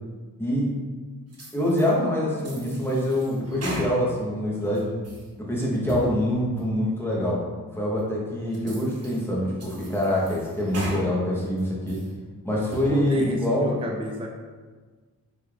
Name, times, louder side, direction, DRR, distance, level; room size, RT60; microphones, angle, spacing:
voice 1, 0.4-0.7 1.5-4.9 5.4-7.4 7.7-12.0 12.4-13.7, left 1 dB, 5° left, -5 dB, 0.8 m, -25 dB
Hydraulic Suction-Sound of a Train-Toilet, 1.3-1.9 2.4-4.3 4.7-5.3 5.7-6.1 6.6-6.7 7.3-7.4 8.0-8.1 8.5-9.2 9.6-11.0 11.4-12.1 12.5-13.0, right 1 dB, 40° right, 0.8 m, -38 dB
voice 2, 12.7-14.3, right 1 dB, 15° right, 0 dB, 0.3 m, -30 dB
4.7 x 3.4 x 2.3 m, 1.4 s
wide cardioid pair, 155°, 37 cm